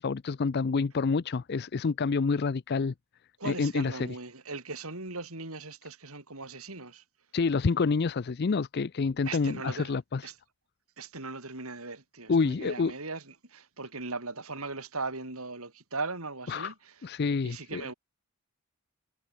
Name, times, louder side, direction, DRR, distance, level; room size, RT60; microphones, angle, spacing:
voice 1, 0.0-2.9 3.4-4.1 7.3-10.3 12.3-12.9 16.5-16.7 17.0-17.8, left 4 dB, 45° left, 0.4 m, -28 dB
voice 2, 3.4-7.0 9.2-9.9 10.2-10.3 11.0-16.9 17.4-17.9, right 3 dB, 75° right, 4.4 m, -39 dB
head